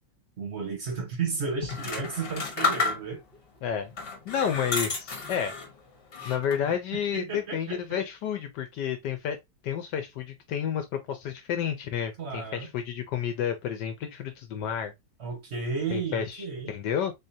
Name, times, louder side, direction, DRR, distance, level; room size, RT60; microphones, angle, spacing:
voice 1, 0.4-3.2 7.1-8.1 12.2-12.7 15.2-16.7, right 5 dB, 45° right, 1.0 m, -33 dB
sound 1, 1.6-3.3 3.9-5.7 6.1-6.7, left 4 dB, 45° left, 0.7 m, -31 dB
voice 2, 3.6-3.9 4.3-5.6 6.2-9.4 9.6-14.9 15.9-17.1, left 8 dB, 75° left, 1.0 m, -30 dB
3.7 x 3.3 x 2.6 m
omnidirectional pair, 2.3 m